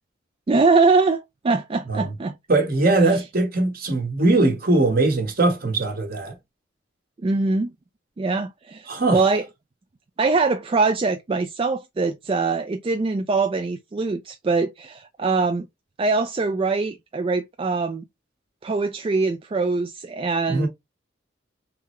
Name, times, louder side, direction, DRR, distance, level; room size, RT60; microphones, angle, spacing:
voice 1, 0.5-2.4 3.1-3.2 7.2-7.7 8.2-9.5 10.2-15.7 16.0-18.0 18.6-20.7, right 4 dB, 30° right, 0.3 m, -23 dB
voice 2, 2.5-6.3 8.9-9.2 20.5-20.7, right 2 dB, 50° right, 1.3 m, -20 dB
3.7 x 3.2 x 3.0 m
head